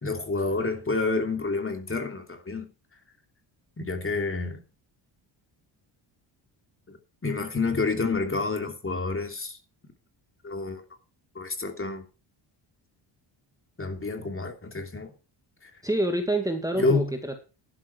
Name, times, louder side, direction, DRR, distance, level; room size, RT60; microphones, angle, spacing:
voice 1, 0.0-2.7 3.8-4.6 6.9-9.6 10.4-10.8 11.3-12.1 13.8-15.1 15.6-15.7 16.8-17.1, left 3 dB, 25° left, 3.1 m, -28 dB
voice 2, 15.8-17.4, right 1 dB, 5° right, 2.3 m, -27 dB
12.0 x 11.0 x 4.7 m
cardioid pair, 80°, 48 cm